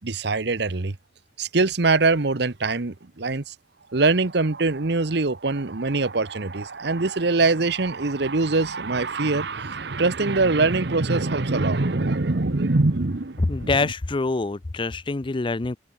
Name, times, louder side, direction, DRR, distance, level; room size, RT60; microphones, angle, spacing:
voice 1, 0.0-1.0 1.4-3.5 3.9-13.7, right 3 dB, 65° right, 1.1 m, -23 dB
voice 2, 13.4-15.8, left 3 dB, 25° left, 0.5 m, -25 dB
head